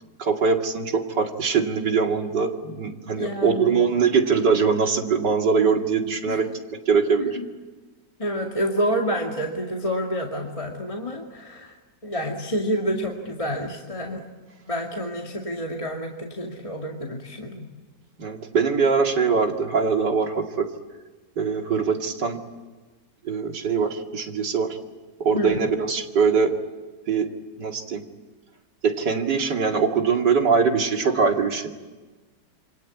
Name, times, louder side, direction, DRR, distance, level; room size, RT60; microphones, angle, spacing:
voice 1, 0.2-7.4 18.2-20.7 21.4-22.4 23.2-24.8 25.2-26.5 27.1-27.3 27.6-28.0 28.8-31.7, right 5 dB, 85° right, 3 dB, 3.0 m, -22 dB
voice 2, 3.2-3.8 6.3-6.4 7.2-7.4 8.2-11.8 12.0-14.2 14.7-17.7 25.3-25.6, equal, 20° left, 0 dB, 2.3 m, -28 dB
28.0 x 25.0 x 8.6 m, 1.3 s
omnidirectional pair, 1.8 m